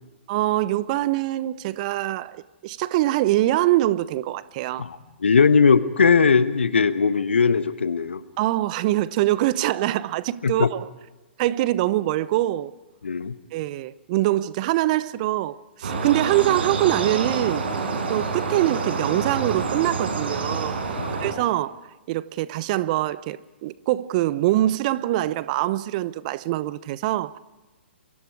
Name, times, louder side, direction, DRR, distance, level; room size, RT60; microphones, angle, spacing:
voice 1, 0.3-4.9 8.4-10.8 11.4-12.7 13.5-17.6 18.1-20.8 21.1-21.8 22.1-27.4, right 15 dB, 40° right, 0.9 m, -24 dB
voice 2, 4.8-8.2 10.4-10.7 13.0-13.4 21.0-21.1, left 5 dB, 75° left, 1.2 m, -19 dB
sound 1, 15.8-21.3, right 4 dB, 65° right, 5.2 m, -27 dB
28.5 x 23.0 x 4.8 m
figure-of-eight pair, 120°, 6 cm